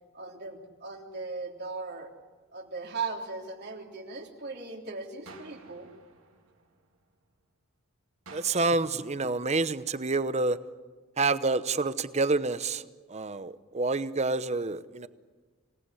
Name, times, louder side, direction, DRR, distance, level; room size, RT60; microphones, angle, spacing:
voice 1, 0.1-2.1 2.5-5.9, right 4 dB, 50° right, 2 dB, 3.3 m, -38 dB
sound 1, 5.3-7.3 8.3-10.3, right 3 dB, 70° right, 3.4 m, -54 dB
voice 2, 8.3-10.6 11.2-12.8 13.1-15.1, right 3 dB, 30° right, 14 dB, 0.8 m, -28 dB
27.0 x 18.5 x 9.9 m, 1.4 s
head